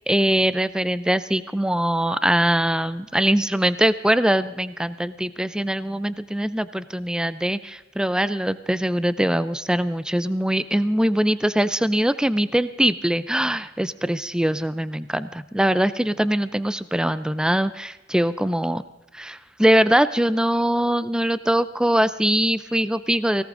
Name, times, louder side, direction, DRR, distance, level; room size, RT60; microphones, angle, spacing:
voice 1, 0.1-18.8 19.1-23.4, right 1 dB, 5° right, 14 dB, 0.4 m, -22 dB
19.0 x 17.5 x 3.7 m, 1.1 s
head